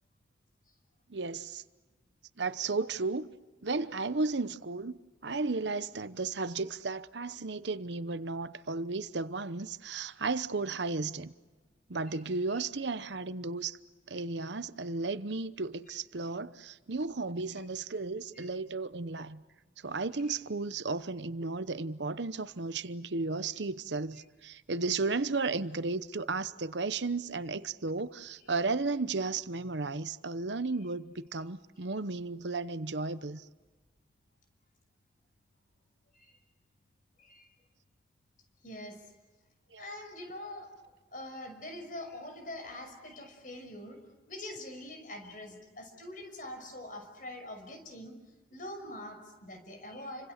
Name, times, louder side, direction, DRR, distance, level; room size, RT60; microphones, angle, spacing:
voice 1, 1.1-1.6 2.4-3.3 3.6-11.3 11.9-13.8 14.1-19.4 19.8-33.5 39.7-39.9, right 3 dB, 75° right, 0.9 m, -34 dB
voice 2, 37.2-37.5 38.6-39.1 39.8-40.7 41.1-44.0 44.3-48.2 48.5-50.3, left 1 dB, 45° left, 5.9 m, -44 dB
30.0 x 25.5 x 6.7 m
head